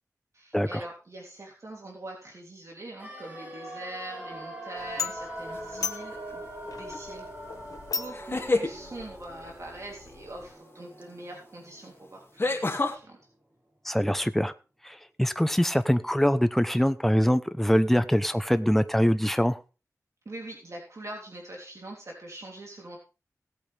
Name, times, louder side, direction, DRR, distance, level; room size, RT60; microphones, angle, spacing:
voice 1, 0.3-13.2 20.3-23.0, right 1 dB, 55° right, -1 dB, 3.5 m, -43 dB
sound 1, 3.0-12.9 13.2-13.3, right 1 dB, 25° right, 5.4 m, -43 dB
sound 2, 4.8-10.5, left 5 dB, 85° left, 1.0 m, -39 dB
sound 3, 5.5-6.0 8.1-8.7 11.0-11.1 12.4-13.0, left 2 dB, 40° left, 2.6 m, -27 dB
voice 2, 13.8-14.5 14.8-19.6, equal, 5° left, 11 dB, 1.0 m, -24 dB
18.5 x 8.6 x 3.6 m, 0.32 s
wide cardioid pair, 75°, 6 cm